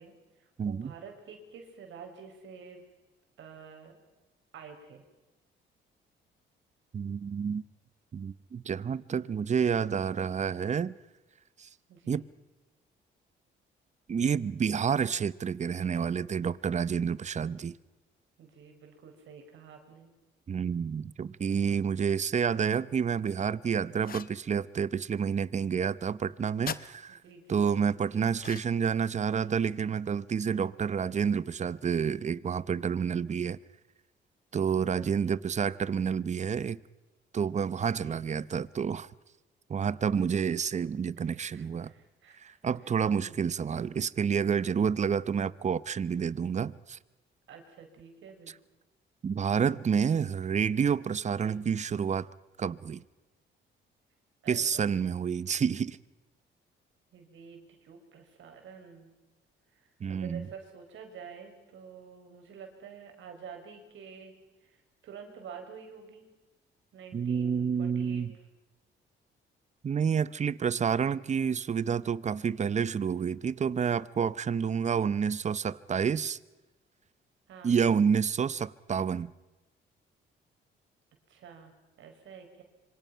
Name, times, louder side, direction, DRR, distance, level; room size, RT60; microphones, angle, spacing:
voice 1, 0.0-2.8 3.4-4.0 4.5-5.0 11.9-12.3 18.4-20.1 27.1-27.7 28.0-28.3 34.9-35.4 38.0-38.3 39.8-40.6 41.2-42.6 43.2-43.6 47.5-48.5 51.2-51.6 54.4-54.9 57.1-59.1 59.7-64.3 64.6-66.3 66.9-68.2 77.5-77.8 81.3-82.6, right 6 dB, 75° right, 4.9 m, -49 dB
voice 2, 0.6-0.9 6.9-7.6 8.1-10.9 11.6-11.7 12.1-12.2 14.1-17.7 20.5-27.2 27.5-33.6 34.5-36.8 37.3-39.1 39.7-41.9 42.4-47.0 49.2-52.3 52.6-53.0 54.5-56.0 60.0-60.5 67.1-68.3 69.8-76.4 77.6-79.3, right 7 dB, 35° right, 0.8 m, -29 dB
sound 1, 24.0-24.4 26.7-26.9 28.4-28.9, left 8 dB, 45° left, 0.9 m, -39 dB
26.0 x 24.5 x 5.7 m
cardioid pair, 90°, 20 cm